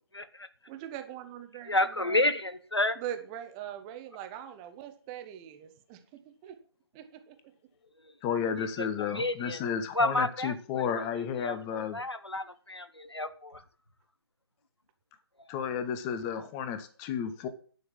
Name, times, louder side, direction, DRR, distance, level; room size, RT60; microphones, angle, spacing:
voice 1, 0.1-0.5 1.7-3.0 8.6-9.6 9.9-10.5 10.9-11.1 11.4-13.6, left 2 dB, 85° left, 12 dB, 1.4 m, -30 dB
voice 2, 0.7-2.3 3.0-6.5 6.9-7.4, right 10 dB, 15° right, 8 dB, 1.1 m, -42 dB
voice 3, 8.2-12.0 15.5-17.5, left 7 dB, 15° left, 11 dB, 1.0 m, -32 dB
10.5 x 6.4 x 7.2 m, 0.42 s
figure-of-eight pair, 145°, 13 cm